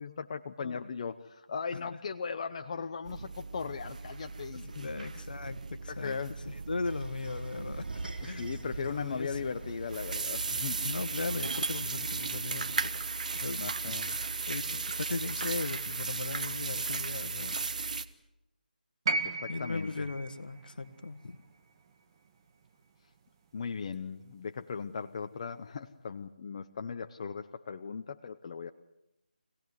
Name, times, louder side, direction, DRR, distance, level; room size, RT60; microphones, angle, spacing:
voice 1, 0.0-4.9 5.9-6.4 8.3-10.9 13.6-14.1 19.2-20.1 23.5-28.7, left 5 dB, 35° left, 7 dB, 0.9 m, -38 dB
voice 2, 0.6-0.9 1.7-2.0 4.6-8.5 8.9-9.7 10.8-12.8 13.3-14.0 14.5-17.8 19.5-21.4, left 3 dB, 65° left, 10 dB, 1.6 m, -38 dB
sound 1, 3.0-18.0, right 4 dB, 50° right, 1.3 m, -36 dB
sound 2, 6.8-12.9, right 2 dB, 70° right, 4.1 m, -46 dB
sound 3, 19.1-23.2 24.4-24.5, right 3 dB, 30° right, 1.9 m, -37 dB
26.0 x 18.0 x 9.5 m, 0.88 s
figure-of-eight pair, 165°, 5 cm